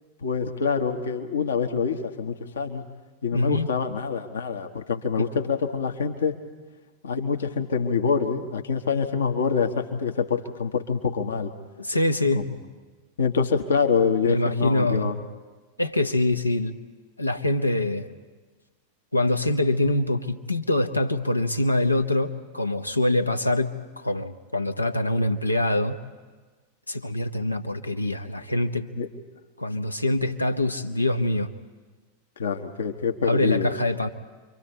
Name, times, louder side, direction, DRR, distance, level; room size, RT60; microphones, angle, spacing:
voice 1, 0.2-2.8 3.2-6.4 7.0-11.5 12.3-12.4 13.2-15.2 29.0-29.1 32.4-33.7, left 5 dB, 65° left, 5 dB, 1.2 m, -25 dB
voice 2, 3.3-3.7 5.2-5.3 11.8-12.5 14.2-15.2 15.8-16.8 17.2-18.1 19.1-23.7 24.0-26.0 26.9-28.9 29.6-31.5 33.2-34.1, left 1 dB, 85° left, 7 dB, 1.0 m, -24 dB
29.0 x 24.0 x 4.3 m, 1.4 s
figure-of-eight pair, 90°, 0 cm